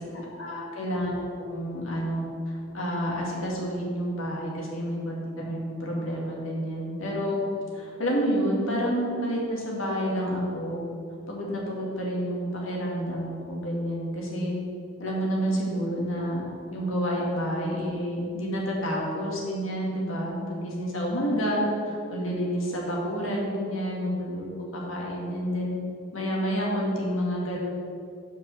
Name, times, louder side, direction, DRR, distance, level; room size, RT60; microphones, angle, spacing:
voice 1, 0.0-7.4 7.7-10.8 11.3-14.6 15.0-16.4 16.7-25.8 26.1-27.6, equal, 85° left, -3 dB, 2.2 m, -29 dB
8.2 x 5.3 x 6.5 m, 2.4 s
head